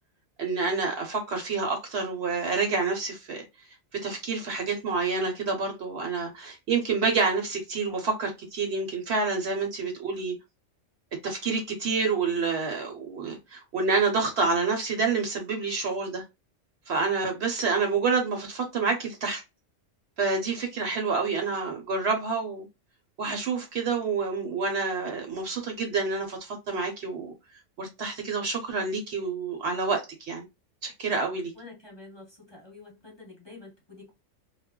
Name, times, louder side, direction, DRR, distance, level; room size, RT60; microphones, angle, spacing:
voice 1, 0.4-3.4 4.0-10.4 11.2-16.2 16.9-19.4 20.2-22.7 23.2-27.3 27.8-30.5 30.8-31.5, right 4 dB, 60° right, 0.9 m, -28 dB
voice 2, 31.5-34.1, left 3 dB, 25° left, 0.9 m, -48 dB
2.3 x 2.0 x 3.5 m
omnidirectional pair, 1.3 m